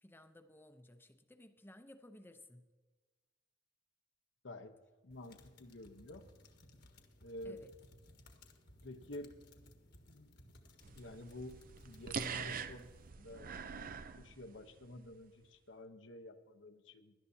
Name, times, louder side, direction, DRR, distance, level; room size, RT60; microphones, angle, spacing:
voice 1, 0.0-2.6 7.4-7.7, left 1 dB, 10° left, 8 dB, 0.7 m, -57 dB
voice 2, 5.0-6.2 7.2-7.6 8.8-9.3 10.1-10.4 10.9-11.6 11.8-12.9 13.2-13.5 14.2-17.1, left 1 dB, 80° left, 7 dB, 0.9 m, -49 dB
sound 1, 5.1-13.1, left 1 dB, 60° left, 1.4 m, -61 dB
sound 2, 10.8-14.9, right 6 dB, 50° right, 0.5 m, -44 dB
18.0 x 11.5 x 2.8 m, 1.3 s
head